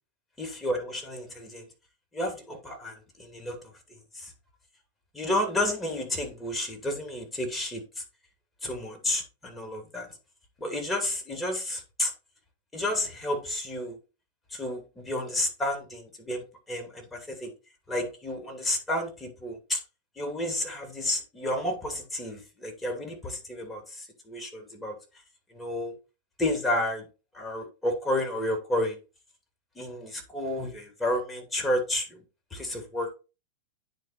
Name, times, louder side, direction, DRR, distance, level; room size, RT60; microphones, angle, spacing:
voice 1, 0.4-1.7 2.1-3.6 4.1-4.3 5.1-8.0 8.6-10.1 10.6-12.1 12.7-14.0 14.5-17.5 17.9-19.8 20.2-25.0 25.5-25.9 26.4-27.1 27.3-29.0 29.8-32.2 32.5-33.1, left 1 dB, 10° left, 2.4 m, -31 dB
9.3 x 4.4 x 4.2 m
figure-of-eight pair, 95°, 0 cm